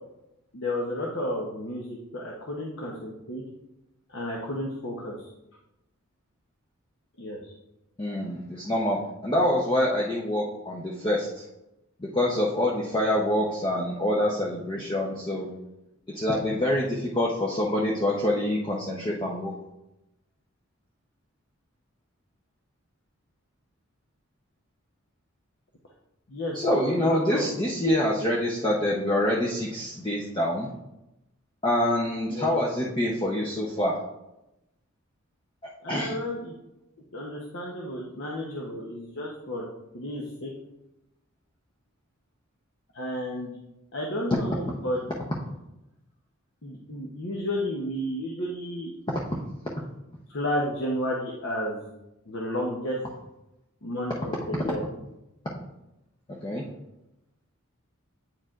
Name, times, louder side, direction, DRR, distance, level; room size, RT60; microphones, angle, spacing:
voice 1, 0.5-3.4 4.1-5.1 7.2-7.5 26.3-27.5 32.3-32.6 35.8-36.5 37.1-39.6 39.9-40.5 42.9-43.5 43.9-45.0 46.6-48.9 50.3-51.9 52.3-53.0 53.8-54.8, left 1 dB, 60° left, -2 dB, 0.8 m, -32 dB
voice 2, 8.0-11.4 12.0-15.5 16.1-19.5 26.5-30.7 31.6-34.0 35.9-36.1 49.3-49.4 56.3-56.6, left 1 dB, 20° left, -3 dB, 0.6 m, -26 dB
8.9 x 4.7 x 2.4 m, 0.92 s
head